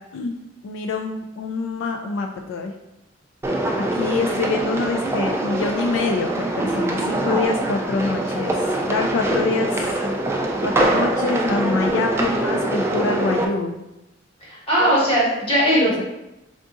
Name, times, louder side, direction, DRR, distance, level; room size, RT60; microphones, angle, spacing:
voice 1, 0.6-2.7 3.7-9.9 10.6-13.8, left 4 dB, 80° left, 4 dB, 0.3 m, -25 dB
sound 1, 3.4-13.5, right 1 dB, 15° right, 0.3 m, -23 dB
voice 2, 14.4-16.0, equal, 30° left, -7 dB, 1.3 m, -19 dB
3.7 x 3.6 x 2.5 m, 0.94 s
head